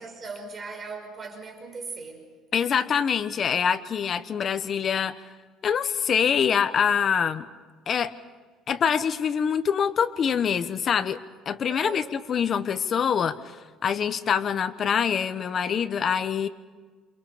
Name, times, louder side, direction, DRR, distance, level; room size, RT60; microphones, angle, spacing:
voice 1, 0.0-2.3 11.7-12.1, right 4 dB, 30° right, 3 dB, 5.4 m, -39 dB
voice 2, 2.5-5.2 5.6-7.5 7.9-8.1 8.7-11.2 11.5-13.5 13.8-16.5, left 7 dB, 35° left, 10 dB, 1.1 m, -25 dB
29.0 x 28.5 x 5.1 m, 1.4 s
cardioid pair, 155°, 0 cm